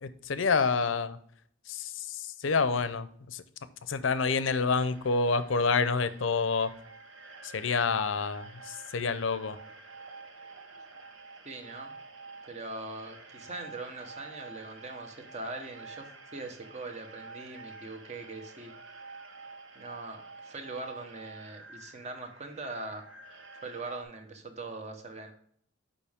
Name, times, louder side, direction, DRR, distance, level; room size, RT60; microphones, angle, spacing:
voice 1, 0.0-1.2 1.7-3.4 3.9-6.7 7.5-9.6, left 4 dB, 80° left, 13 dB, 0.6 m, -28 dB
sound 1, 4.4-24.0, right 3 dB, 85° right, 0.9 m, -49 dB
voice 2, 11.4-11.9 12.5-16.0 16.3-18.7 19.7-20.2 20.4-23.0 23.6-25.3, right 2 dB, 35° right, 5 dB, 1.0 m, -41 dB
6.9 x 5.3 x 3.5 m, 0.64 s
head